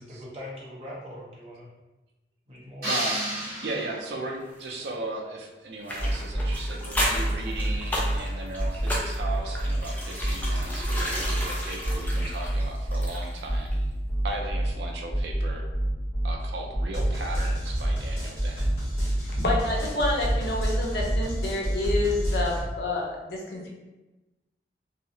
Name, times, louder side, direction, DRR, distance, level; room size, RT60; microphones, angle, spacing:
voice 1, 0.0-1.7 2.5-3.0, equal, 35° right, -5 dB, 0.6 m, -41 dB
sound 1, 2.8-4.4, right 1 dB, 55° right, 1.0 m, -31 dB
voice 2, 2.9-3.2 3.6-13.7 14.2-15.7 16.2-18.7 19.6-19.9, right 2 dB, 75° right, 1 dB, 0.4 m, -36 dB
sound 2, 5.9-13.5 13.7-13.8, left 1 dB, 10° left, 0.3 m, -33 dB
sound 3, 6.0-6.6 6.9-8.2 8.6-9.8 10.2-11.4 11.8-13.1 13.5-14.7 15.1-16.3 16.7-22.6, right 1 dB, 35° left, 1.1 m, -27 dB
voice 3, 19.4-23.7, left 2 dB, 60° left, -2 dB, 0.6 m, -28 dB
2.7 x 2.0 x 2.6 m, 1.1 s
head